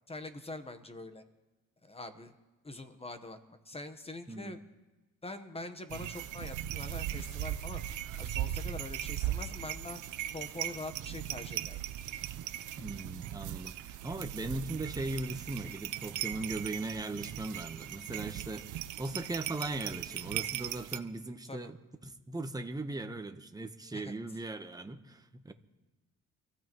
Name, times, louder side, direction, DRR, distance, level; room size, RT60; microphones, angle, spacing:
voice 1, 0.1-1.2 1.8-2.3 2.6-4.6 5.2-7.8 8.2-10.0 10.3-11.8 21.5-21.7 23.9-24.1, left 2 dB, 20° left, 9 dB, 1.1 m, -44 dB
voice 2, 4.3-4.6 12.8-21.8 22.0-25.5, right 2 dB, 10° right, 6 dB, 1.1 m, -39 dB
sound 1, 5.9-21.0, right 12 dB, 80° right, 0.7 m, -38 dB
26.5 x 14.5 x 3.1 m, 1.1 s
cardioid pair, 90°, 30 cm